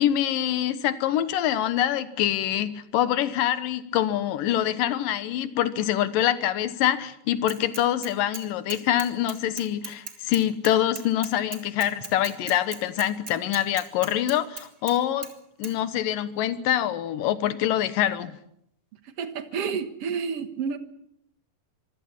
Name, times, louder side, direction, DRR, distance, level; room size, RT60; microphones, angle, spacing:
voice 1, 0.0-15.3 15.6-18.3, left 11 dB, 85° left, 13 dB, 2.8 m, -25 dB
Bicycle / Mechanisms, 7.5-8.4 8.7-15.0 15.2-15.3 15.6-15.7, right 4 dB, 30° right, 2.2 m, -37 dB
voice 2, 19.2-20.8, right 6 dB, 55° right, 10 dB, 2.1 m, -30 dB
25.0 x 16.5 x 7.3 m, 0.75 s
omnidirectional pair, 3.8 m